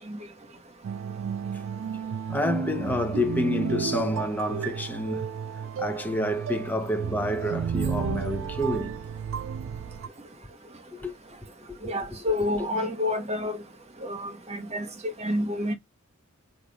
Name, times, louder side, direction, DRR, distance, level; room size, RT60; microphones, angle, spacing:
sound 1, 0.8-10.1, right 6 dB, 80° right, 0.3 m, -32 dB
voice 1, 2.3-5.3 5.8-9.0 11.0-11.1 11.7-11.8, left 1 dB, 10° left, 0.9 m, -28 dB
voice 2, 11.8-13.6 14.0-15.7, left 1 dB, 35° right, 1.2 m, -29 dB
5.0 x 2.5 x 4.1 m
head